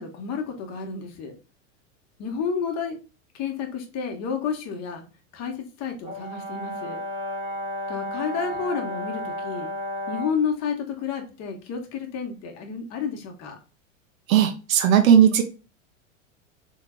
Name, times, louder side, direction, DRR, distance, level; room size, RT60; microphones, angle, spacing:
voice 1, 0.0-1.3 2.2-3.0 3.3-5.0 5.3-7.0 7.9-9.7 10.1-13.6, left 6 dB, 40° left, 3 dB, 1.3 m, -30 dB
Brass instrument, 6.0-10.4, equal, 15° right, 1.1 m, -32 dB
voice 2, 14.3-15.4, right 9 dB, 80° right, 7 dB, 0.8 m, -17 dB
3.8 x 3.5 x 2.3 m, 0.32 s
hypercardioid pair, 110°, 40 cm